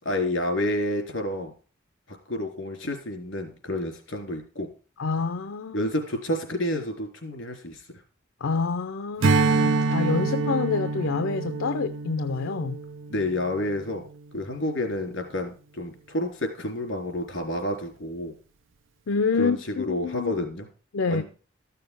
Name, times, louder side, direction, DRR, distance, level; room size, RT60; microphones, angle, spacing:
voice 1, 0.0-1.5 2.1-4.7 5.7-7.8 13.1-14.0 14.3-18.3 19.3-20.7 21.1-21.2, left 1 dB, 65° left, 3.8 m, -29 dB
voice 2, 5.0-5.8 8.4-12.8 19.1-20.3 20.9-21.2, left 4 dB, 85° left, 0.6 m, -27 dB
Strum, 9.2-14.0, right 3 dB, 70° right, 0.6 m, -26 dB
13.5 x 6.7 x 5.2 m
head